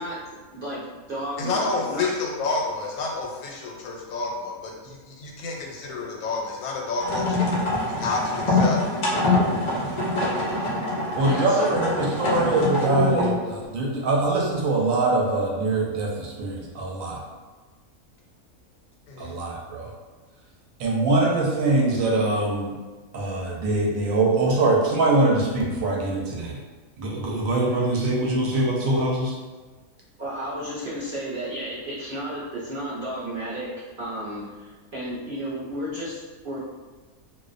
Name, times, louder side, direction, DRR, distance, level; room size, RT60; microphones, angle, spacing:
voice 1, 0.0-2.1 11.2-11.8 30.2-33.7 34.0-36.6, equal, 55° right, -9 dB, 0.6 m, -33 dB
voice 2, 1.4-7.5 7.8-8.8 19.1-19.4, left 3 dB, 90° left, -1 dB, 1.1 m, -29 dB
sound 1, 7.0-13.5, left 2 dB, 70° left, 0.4 m, -24 dB
voice 3, 11.2-17.2 19.2-19.9 20.8-22.7 23.1-26.6 27.0-29.4, right 2 dB, 75° right, -2 dB, 0.9 m, -23 dB
2.4 x 2.1 x 2.4 m, 1.3 s
omnidirectional pair, 1.5 m